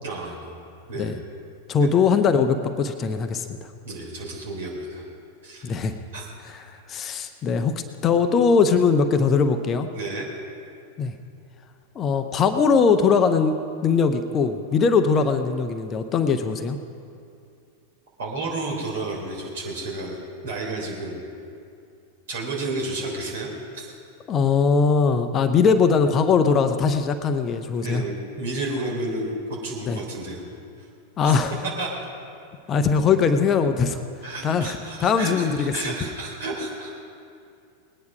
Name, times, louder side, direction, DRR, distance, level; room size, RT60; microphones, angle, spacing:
voice 1, 0.0-0.6 0.9-1.1 1.8-1.9 3.8-5.0 5.4-5.7 6.1-6.3 6.6-6.8 9.9-10.3 18.2-20.2 20.4-21.2 22.3-23.5 23.7-23.9 27.8-30.4 31.2-31.4 31.8-31.9 34.2-36.9, right 2 dB, 60° right, -1 dB, 3.3 m, -31 dB
voice 2, 1.7-3.6 5.6-6.0 6.4-7.7 8.0-9.9 11.0-11.1 12.0-13.5 13.8-16.8 24.3-28.0 29.9-30.0 31.2-31.5 32.7-34.0 34.4-35.9, left 5 dB, 30° left, 8 dB, 0.7 m, -21 dB
20.0 x 9.5 x 5.1 m, 2.5 s
figure-of-eight pair, 90°, 0 cm